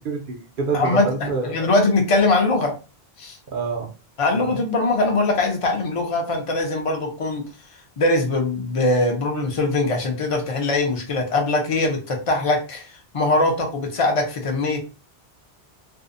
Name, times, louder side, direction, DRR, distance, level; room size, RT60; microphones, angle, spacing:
voice 1, 0.0-1.7 3.5-3.9 4.3-4.6, right 4 dB, 60° right, 2 dB, 0.7 m, -27 dB
voice 2, 0.7-2.7 3.2-3.4 4.2-7.5 8.0-12.9 13.1-14.8, left 2 dB, 40° left, 3 dB, 0.5 m, -21 dB
2.6 x 2.0 x 2.5 m, 0.33 s
omnidirectional pair, 1.1 m